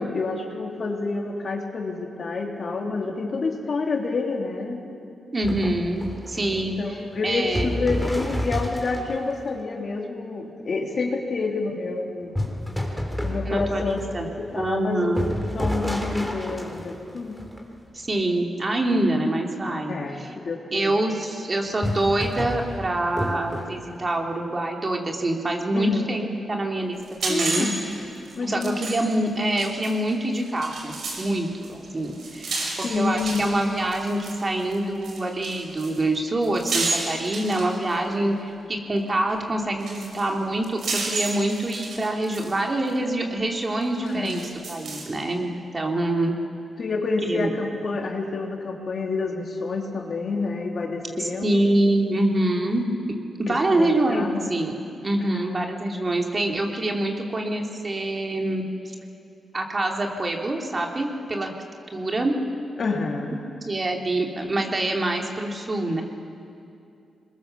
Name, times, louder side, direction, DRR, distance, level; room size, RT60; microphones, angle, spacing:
voice 1, 0.0-4.8 6.8-12.3 13.2-17.4 19.9-20.9 25.7-26.1 27.3-27.7 28.4-28.7 32.8-33.4 38.1-38.3 44.0-44.5 46.8-51.6 53.5-54.5 55.3-55.8 62.8-63.4, left 3 dB, 55° left, 1 dB, 3.0 m, -28 dB
voice 2, 5.3-6.8 7.2-7.7 13.4-14.3 14.5-15.2 17.9-20.3 20.7-27.7 28.4-44.4 44.7-46.3 47.2-47.5 51.2-52.9 53.4-58.9 59.5-61.5 61.9-62.4 63.7-66.0, right 1 dB, 35° right, 1 dB, 3.2 m, -25 dB
sound 1, 5.4-9.4 12.3-18.1 21.7-24.0, left 1 dB, ahead, 3.7 m, -30 dB
sound 2, 27.0-31.2 31.6-38.1 39.3-39.4 39.8-42.6 42.9-43.0 43.8-45.2, right 3 dB, 75° right, 5.5 m, -32 dB
22.5 x 21.5 x 7.1 m, 2.6 s
cardioid pair, 60°, 0 cm